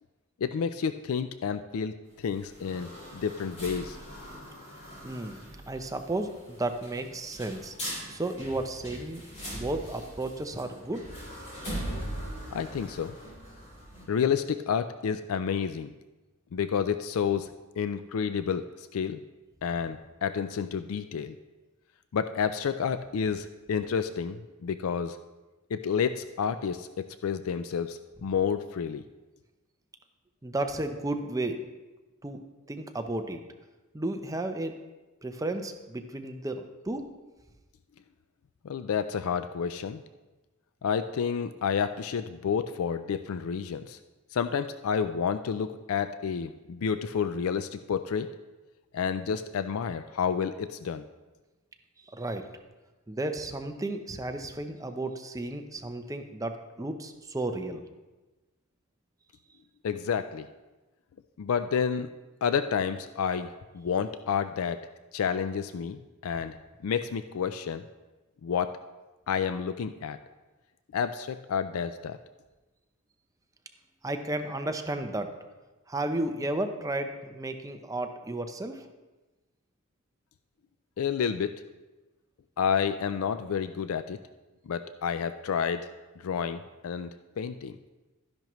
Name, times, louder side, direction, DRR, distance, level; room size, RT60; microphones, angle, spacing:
voice 1, 0.4-4.0 12.5-13.1 14.1-15.9 16.5-17.5 17.8-19.2 19.6-21.3 22.1-25.2 25.7-29.0 38.6-40.0 40.8-44.0 44.3-48.3 48.9-51.0 59.8-60.5 61.4-62.1 62.4-64.8 65.1-66.6 66.8-67.8 68.4-68.7 69.3-70.2 70.9-72.2 81.0-81.6 82.6-84.2 84.7-85.9 86.2-87.7, left 7 dB, 75° left, 11 dB, 0.4 m, -30 dB
sound 1, 2.1-14.0, equal, 30° left, 3.7 m, -41 dB
voice 2, 5.0-5.4 5.7-7.7 8.1-9.3 9.5-11.1 30.4-31.6 32.2-33.4 33.9-34.7 35.2-37.0 52.1-52.5 53.1-57.8 74.0-75.3 75.9-78.9, right 2 dB, 15° right, 6 dB, 0.6 m, -33 dB
12.5 x 10.5 x 3.1 m, 1.2 s
head